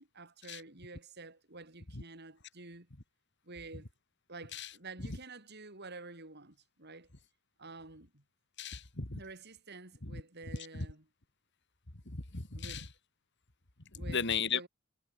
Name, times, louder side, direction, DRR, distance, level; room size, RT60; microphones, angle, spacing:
voice 1, 0.0-2.9 3.4-3.9 4.3-7.1 7.6-8.2 9.1-11.0 12.5-12.9 13.9-14.7, right 3 dB, 55° right, 6.1 m, -49 dB
voice 2, 8.6-9.2 10.1-10.2 10.7-10.9 12.1-12.8 14.1-14.6, left 6 dB, 60° left, 2.5 m, -35 dB
head